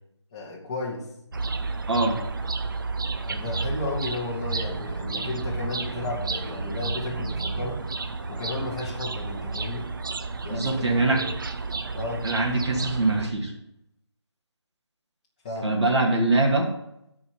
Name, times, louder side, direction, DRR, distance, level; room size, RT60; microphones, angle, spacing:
voice 1, 0.3-1.0 3.3-7.8 8.3-9.9 10.4-11.3 11.9-12.3 15.4-15.7, left 2 dB, 15° left, -3 dB, 1.1 m, -33 dB
sound 1, 1.3-13.3, right 3 dB, 50° right, 0.6 m, -31 dB
voice 2, 10.5-11.2 12.2-13.5 15.6-16.7, right 2 dB, 70° right, -1 dB, 2.5 m, -23 dB
8.3 x 4.9 x 7.2 m, 0.80 s
figure-of-eight pair, 170°, 15 cm